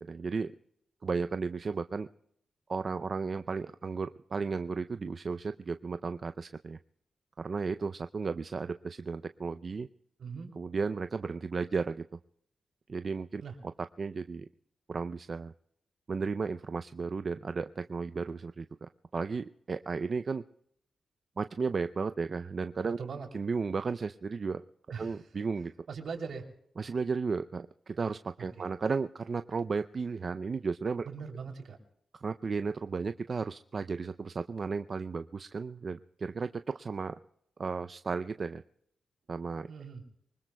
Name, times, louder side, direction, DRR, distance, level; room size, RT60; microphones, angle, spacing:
voice 1, 0.1-0.5 1.0-2.1 2.7-6.8 7.4-9.9 10.6-12.0 12.9-13.7 14.0-14.5 14.9-15.5 16.1-20.4 21.4-23.0 23.3-24.6 25.0-25.7 26.8-31.1 32.2-37.1 37.6-38.6 39.3-39.7, right 4 dB, 45° right, 10 dB, 0.5 m, -34 dB
voice 2, 10.2-10.5 13.4-13.6 23.0-23.3 24.9-25.3 25.9-26.4 28.6-28.7 31.0-31.8 39.7-40.0, right 5 dB, 70° right, 2 dB, 3.1 m, -40 dB
24.0 x 20.5 x 2.3 m, 0.73 s
cardioid pair, 80°, 0 cm